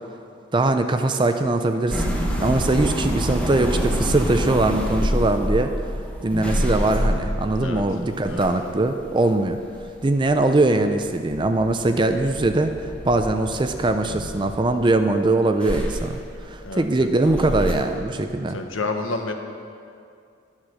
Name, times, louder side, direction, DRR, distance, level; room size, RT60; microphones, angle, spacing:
voice 1, 0.5-5.7 6.2-9.6 10.0-18.6, right 2 dB, 25° right, 7 dB, 0.4 m, -21 dB
sound 1, 1.9-11.0 11.3-15.1 15.6-17.7, equal, 5° left, 1.1 m, -27 dB
voice 2, 16.6-17.1 18.5-19.3, left 3 dB, 80° left, 4 dB, 1.1 m, -29 dB
12.0 x 7.3 x 6.3 m, 2.4 s
head